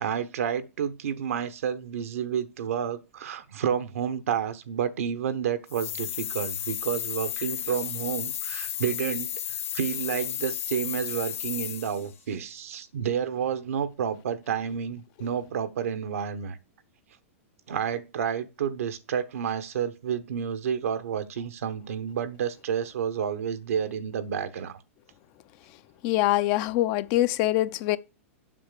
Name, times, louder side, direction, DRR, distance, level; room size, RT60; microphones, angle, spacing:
voice 1, 0.0-9.3 9.7-16.6 17.7-24.8, right 8 dB, 80° right, 1.1 m, -30 dB
sound 1, 5.7-12.1, left 11 dB, 75° left, 1.6 m, -33 dB
voice 2, 26.0-28.0, left 15 dB, 45° left, 0.5 m, -24 dB
7.5 x 5.8 x 6.6 m
hypercardioid pair, 125°, 8 cm